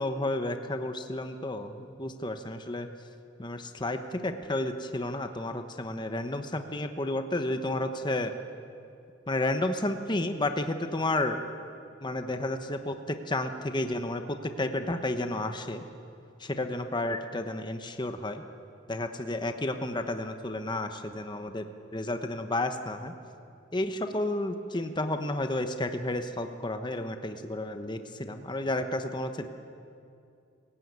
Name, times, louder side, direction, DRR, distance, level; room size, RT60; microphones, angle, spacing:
voice 1, 0.0-2.9 3.4-8.3 9.3-11.4 12.0-15.8 16.4-18.4 18.9-21.7 21.9-23.1 23.7-29.5, left 1 dB, 25° left, 7 dB, 1.1 m, -31 dB
25.0 x 16.0 x 9.5 m, 2.5 s
head